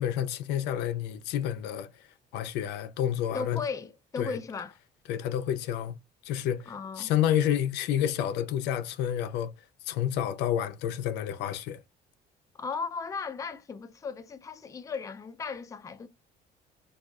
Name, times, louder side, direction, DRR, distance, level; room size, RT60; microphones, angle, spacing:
voice 1, 0.0-1.9 2.3-3.6 4.2-4.4 5.1-6.0 6.2-9.5 9.9-11.8, left 10 dB, 85° left, 0.4 m, -29 dB
voice 2, 3.3-4.8 6.7-7.1 12.6-16.1, left 5 dB, 20° left, 0.4 m, -36 dB
3.5 x 2.3 x 2.3 m
cardioid pair, 110°, 17 cm